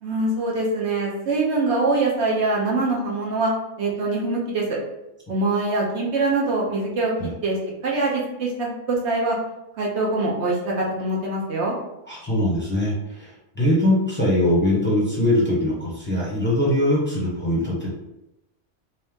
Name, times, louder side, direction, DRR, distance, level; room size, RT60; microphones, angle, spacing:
voice 1, 0.0-3.5 3.8-4.7 5.3-7.1 7.4-7.6 7.8-9.4 9.8-11.7, right 2 dB, 70° right, -3 dB, 1.1 m, -23 dB
voice 2, 12.1-17.9, left 1 dB, 10° left, -6 dB, 0.9 m, -22 dB
3.4 x 2.8 x 3.5 m, 0.91 s
omnidirectional pair, 1.2 m